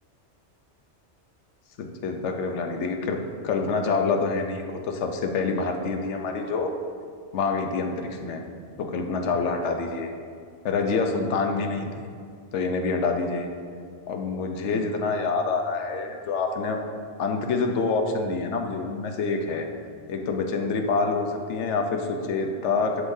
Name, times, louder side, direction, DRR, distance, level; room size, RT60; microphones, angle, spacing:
voice 1, 1.8-6.7 7.3-8.4 8.8-10.1 10.6-11.9 12.5-13.5 14.1-16.8 17.2-19.7 20.1-23.0, left 4 dB, 80° left, 4 dB, 1.0 m, -26 dB
11.0 x 3.7 x 2.6 m, 2.2 s
omnidirectional pair, 1.2 m